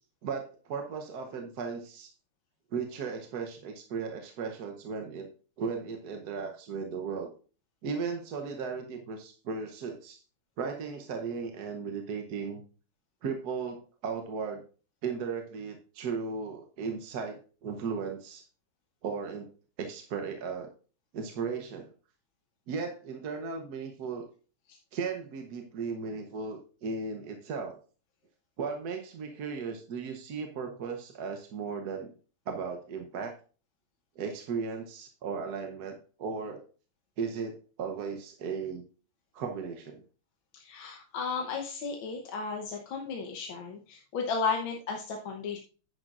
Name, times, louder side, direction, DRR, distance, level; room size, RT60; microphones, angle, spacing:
voice 1, 0.2-2.1 2.7-5.3 5.6-7.3 7.8-10.2 10.6-12.6 13.2-14.6 15.0-18.4 19.0-19.5 19.8-20.7 21.1-21.9 22.7-24.2 24.9-27.8 28.6-32.1 32.5-33.3 34.2-36.6 37.2-38.8 39.3-40.0, right 5 dB, 55° right, 4 dB, 1.3 m, -36 dB
voice 2, 40.5-45.6, left 5 dB, 65° left, 2 dB, 1.7 m, -34 dB
10.5 x 10.0 x 2.5 m, 0.38 s
omnidirectional pair, 2.4 m